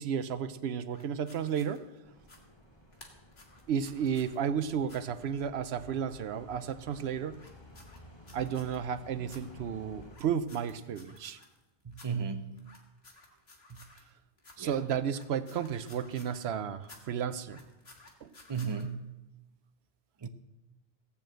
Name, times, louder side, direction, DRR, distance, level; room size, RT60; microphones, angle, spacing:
voice 1, 0.0-1.9 3.7-7.4 8.3-11.4 14.6-17.6 18.2-18.3, right 8 dB, 90° right, 0.9 m, -33 dB
sound 1, 0.9-1.8 2.2-2.4 2.9-4.4 4.8-5.0 7.3-8.8 9.3-9.4 10.0-11.6 11.9-12.1 12.6-14.1 14.4-14.6 15.0-16.5 16.8-17.0 17.4-18.8, left 2 dB, 90° left, 2.0 m, -55 dB
sound 2, 2.0-10.2, left 1 dB, 25° left, 1.7 m, -54 dB
voice 2, 11.8-12.6 13.7-13.8 14.6-14.9 18.5-19.1 20.2-20.3, right 5 dB, 30° right, 0.7 m, -35 dB
16.5 x 7.0 x 7.7 m
omnidirectional pair, 1.0 m